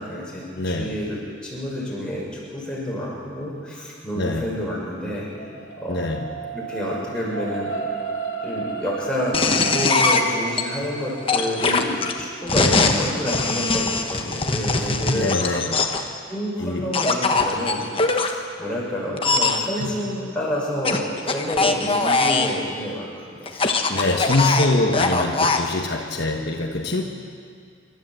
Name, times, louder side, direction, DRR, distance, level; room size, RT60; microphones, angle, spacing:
voice 1, 0.0-5.3 5.8-6.1 6.5-7.7 8.4-15.4 16.3-23.5, equal, 5° left, -6 dB, 6.5 m, -29 dB
voice 2, 0.6-0.9 4.2-4.5 5.9-6.3 12.5-12.9 14.8-15.9 16.6-16.9 19.8-20.0 23.5-27.0, left 2 dB, 60° left, 1 dB, 1.4 m, -24 dB
sound 1, 4.8-17.1 17.6-17.7, right 5 dB, 75° left, 2.6 m, -35 dB
sound 2, 9.3-10.6 11.3-16.1 16.9-18.3 19.2-19.6 20.8-22.6 23.5-25.6, left 3 dB, 30° left, 1.2 m, -21 dB
27.5 x 13.0 x 7.7 m, 2.2 s
head